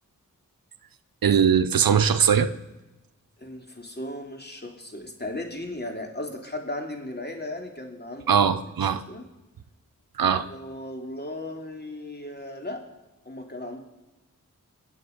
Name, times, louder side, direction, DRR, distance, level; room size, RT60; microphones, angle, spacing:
voice 1, 1.2-2.5 8.3-9.0 10.2-10.4, right 7 dB, 90° right, 0.7 m, -20 dB
voice 2, 3.4-8.5 8.8-9.2 10.3-12.8 13.2-13.8, left 1 dB, 30° left, 2.8 m, -36 dB
22.5 x 8.4 x 5.2 m
cardioid pair, 45°, 34 cm